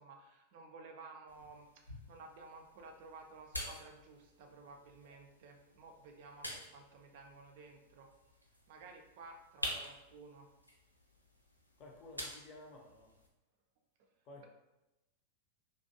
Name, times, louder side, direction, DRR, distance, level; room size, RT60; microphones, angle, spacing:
voice 1, 0.0-8.1 8.7-10.5 14.0-14.1 14.4-14.5, right 3 dB, 50° right, 3 dB, 0.4 m, -54 dB
sound 1, 1.3-13.3, equal, 90° left, 0.4 m, -49 dB
voice 2, 11.8-13.2 14.2-14.5, left 2 dB, 35° left, 0 dB, 0.6 m, -54 dB
2.5 x 2.1 x 2.7 m, 0.97 s
figure-of-eight pair, 90°, 0 cm